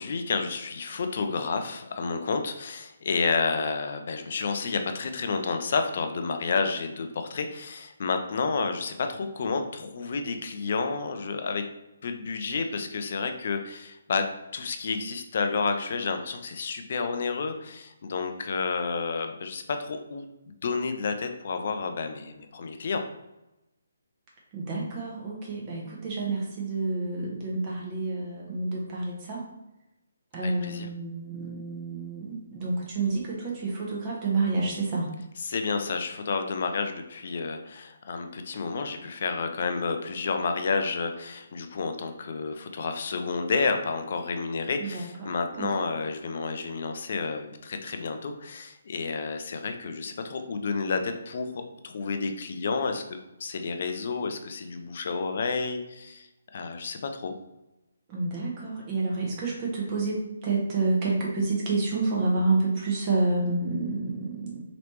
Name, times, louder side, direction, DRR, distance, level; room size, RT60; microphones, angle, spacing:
voice 1, 0.0-11.6 12.0-14.3 14.5-23.0 30.4-30.9 35.4-53.0 53.4-56.3 56.5-57.3, left 4 dB, 50° left, 6 dB, 0.4 m, -30 dB
voice 2, 24.5-29.4 30.3-35.1 44.8-45.7 58.1-64.6, right 3 dB, 30° right, -3 dB, 0.9 m, -29 dB
3.2 x 2.9 x 3.0 m, 0.94 s
figure-of-eight pair, 145°, 0 cm